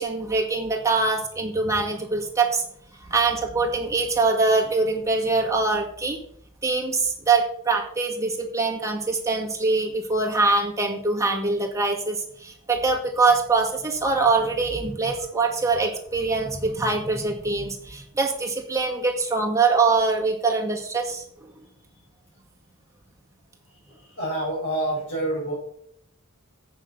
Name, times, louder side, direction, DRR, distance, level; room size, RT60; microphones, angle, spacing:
voice 1, 0.0-2.6 3.1-6.2 6.6-21.2, right 3 dB, 15° right, 0 dB, 2.0 m, -23 dB
voice 2, 24.2-25.5, right 1 dB, 65° left, -4 dB, 4.6 m, -27 dB
8.1 x 6.8 x 7.0 m, 0.66 s
head